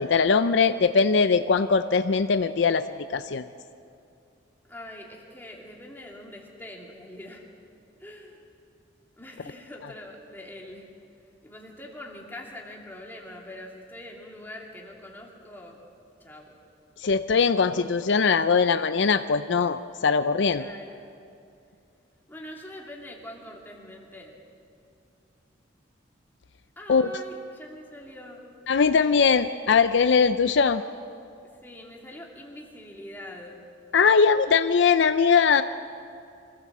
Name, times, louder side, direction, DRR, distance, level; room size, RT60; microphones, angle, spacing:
voice 1, 0.0-3.5 17.0-20.6 26.9-27.1 28.7-30.8 33.9-35.6, left 5 dB, 65° left, 11 dB, 0.5 m, -21 dB
voice 2, 4.6-7.5 8.0-8.4 9.2-10.9 11.4-15.8 16.2-16.5 20.5-21.1 22.3-24.4 26.8-28.4 31.6-33.6, left 1 dB, 10° left, -2 dB, 2.6 m, -43 dB
24.5 x 15.0 x 7.4 m, 2.5 s
head